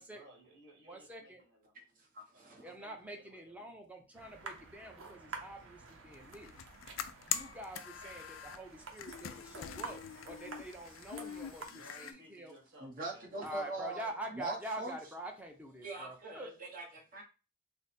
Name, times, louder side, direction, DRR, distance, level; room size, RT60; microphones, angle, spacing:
voice 1, 0.0-1.8 2.3-3.8 11.6-14.0, right 1 dB, 65° right, 0 dB, 1.6 m, -60 dB
voice 2, 0.9-1.4 2.6-6.5 7.3-12.5 13.4-16.5, right 1 dB, 10° right, 2 dB, 0.6 m, -46 dB
voice 3, 2.1-2.6 12.8-14.9 15.8-16.8 17.1-17.2, right 2 dB, 45° right, -1 dB, 1.1 m, -42 dB
sound 1, 4.1-11.7, right 4 dB, 85° right, 0.7 m, -50 dB
sound 2, 6.1-8.6 8.9-12.1, left 9 dB, 85° left, 0.4 m, -43 dB
3.4 x 2.1 x 4.2 m, 0.32 s
head